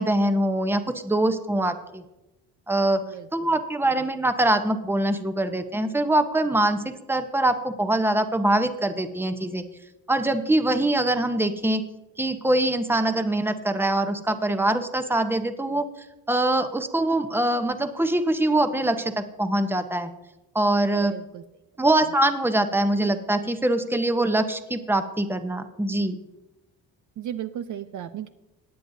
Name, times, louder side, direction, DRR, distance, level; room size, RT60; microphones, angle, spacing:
voice 1, 0.0-2.0 2.7-3.0 3.3-9.6 10.1-11.8 12.2-15.9 16.3-20.1 20.5-21.1 21.8-26.2, right 1 dB, 5° right, 9 dB, 0.9 m, -23 dB
voice 2, 21.0-21.4 27.2-28.3, right 10 dB, 50° right, 10 dB, 0.6 m, -35 dB
17.0 x 9.2 x 2.7 m, 0.99 s
supercardioid pair, 80°, 39 cm